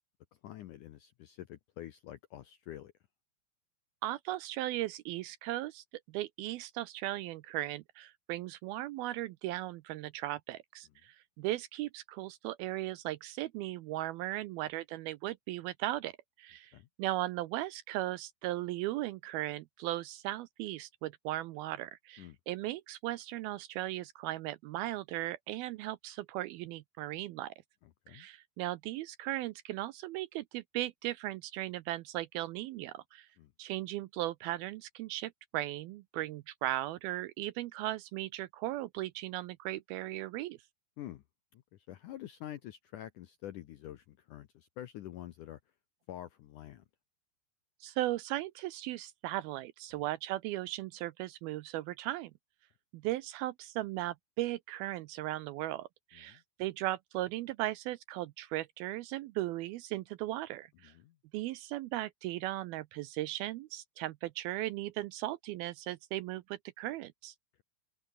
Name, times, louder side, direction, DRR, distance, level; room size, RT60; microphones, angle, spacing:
voice 1, 0.4-2.9 16.7-16.9 22.2-22.4 28.1-28.3 33.4-33.5 41.0-41.2 41.5-45.6 46.1-46.8 49.9-50.0 56.1-56.4 60.8-61.2, left 13 dB, 75° left, 1.9 m, -47 dB
voice 2, 4.0-27.5 28.1-33.3 33.6-40.6 47.8-52.3 52.9-60.9 61.3-67.3, right 16 dB, 80° right, 2.3 m, -37 dB
open air
omnidirectional pair, 4.8 m